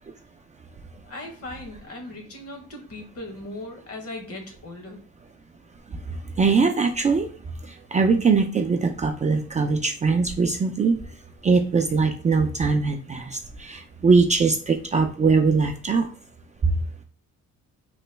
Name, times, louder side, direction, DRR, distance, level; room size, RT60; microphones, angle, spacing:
voice 1, 1.0-5.0, left 2 dB, 50° left, 4 dB, 1.0 m, -38 dB
voice 2, 5.9-7.3 7.6-11.1 11.4-16.1 16.6-16.7, right 4 dB, 25° right, 4 dB, 0.3 m, -22 dB
3.0 x 2.2 x 3.2 m, 0.42 s
cardioid pair, 90°, 30 cm